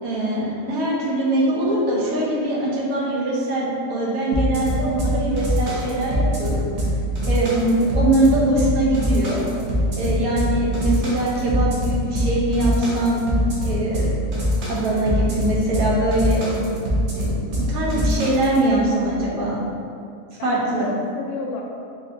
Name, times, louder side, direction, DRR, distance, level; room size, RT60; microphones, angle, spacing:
voice 1, 0.0-6.6 7.3-9.4 10.0-13.2 13.6-14.2 14.7-16.8 17.1-19.6 20.4-20.9, right 1 dB, 75° right, -5 dB, 1.2 m, -22 dB
sound 1, 4.3-18.6, equal, 55° right, 0.9 m, -23 dB
voice 2, 20.4-21.6, left 3 dB, 70° left, -1 dB, 0.9 m, -32 dB
3.7 x 2.8 x 2.5 m, 2.5 s
omnidirectional pair, 1.5 m